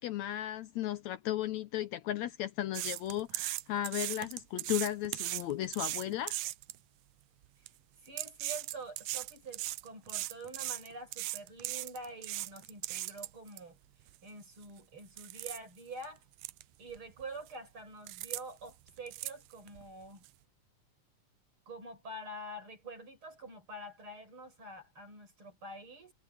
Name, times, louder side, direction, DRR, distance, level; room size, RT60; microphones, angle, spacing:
voice 1, 0.0-6.4, left 13 dB, 75° left, 1.9 m, -35 dB
sound 1, 2.7-6.8 7.4-7.7 8.1-13.6 14.1-14.2 14.6-14.8 15.2-15.6 16.0-16.1 16.4-16.6 16.9-17.5 18.1-18.4 18.7-19.8 20.2-20.3, right 17 dB, 85° right, 1.4 m, -38 dB
voice 2, 8.0-13.8 14.2-16.2 16.8-20.3 21.7-26.1, right 1 dB, 40° right, 7.4 m, -46 dB
omnidirectional pair, 3.6 m